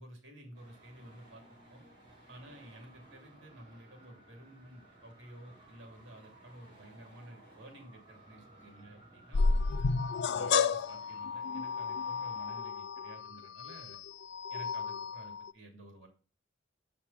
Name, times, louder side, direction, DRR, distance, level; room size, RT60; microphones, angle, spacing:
voice 1, 0.0-1.8 2.3-9.6 10.3-14.0 14.5-16.1, right 1 dB, 75° right, 4 dB, 2.8 m, -52 dB
Traffic noise roadway noise, 0.5-12.6, right 1 dB, 25° right, 5.2 m, -58 dB
sound 1, 9.3-15.5, left 5 dB, 60° left, 0.4 m, -32 dB
7.2 x 5.9 x 5.6 m, 0.36 s
head